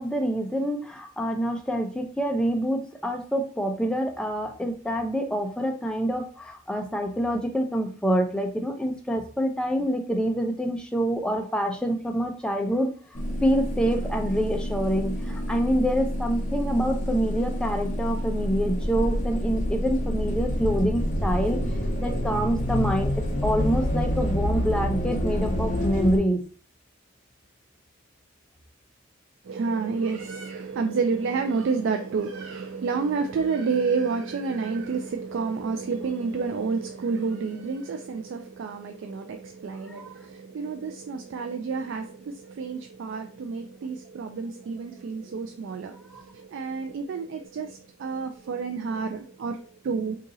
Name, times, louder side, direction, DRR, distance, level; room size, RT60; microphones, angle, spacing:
voice 1, 0.0-12.9 13.4-21.6 22.0-23.1 23.4-26.4 39.9-40.1 46.1-46.2, equal, 5° left, 0.4 m, -26 dB
sound 1, 13.2-26.2, equal, 40° left, 0.7 m, -28 dB
voice 2, 29.5-50.2, right 5 dB, 65° right, 0.3 m, -29 dB
2.8 x 2.7 x 3.7 m
head